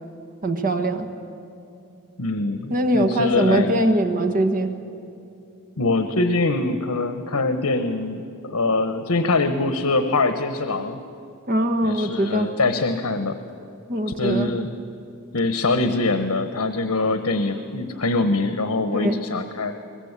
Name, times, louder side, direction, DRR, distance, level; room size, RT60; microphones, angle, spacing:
voice 1, 0.4-1.1 2.7-4.7 11.5-12.5 13.9-14.5 18.9-19.2, right 1 dB, 40° right, 7 dB, 1.4 m, -21 dB
voice 2, 2.2-3.7 5.8-11.0 11.8-13.4 14.1-14.8 15.3-19.8, left 3 dB, 75° left, 8 dB, 1.1 m, -23 dB
22.5 x 20.0 x 8.2 m, 2.6 s
head